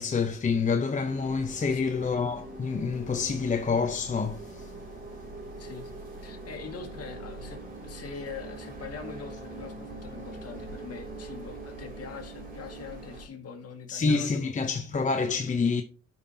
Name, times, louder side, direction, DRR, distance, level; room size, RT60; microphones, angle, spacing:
voice 1, 0.0-4.7 13.9-15.8, left 5 dB, 25° left, 0.7 m, -27 dB
sound 1, 1.0-13.3, right 2 dB, 30° right, 3.2 m, -42 dB
voice 2, 1.7-2.0 5.6-5.9 6.2-14.9, left 6 dB, 50° left, 2.1 m, -43 dB
12.5 x 5.5 x 2.8 m
cardioid pair, 90°, 30 cm